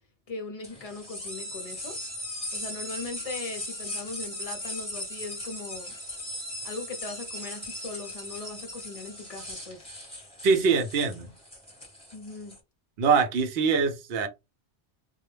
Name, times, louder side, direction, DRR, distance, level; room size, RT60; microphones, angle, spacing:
voice 1, 0.3-2.0 2.5-5.9 6.6-9.9 12.1-12.6, left 3 dB, 45° left, 0.5 m, -39 dB
sound 1, 0.6-12.6, left 1 dB, 5° left, 0.9 m, -38 dB
voice 2, 10.4-11.3 13.0-14.3, right 5 dB, 65° right, 0.8 m, -23 dB
2.2 x 2.0 x 3.1 m
omnidirectional pair, 1.2 m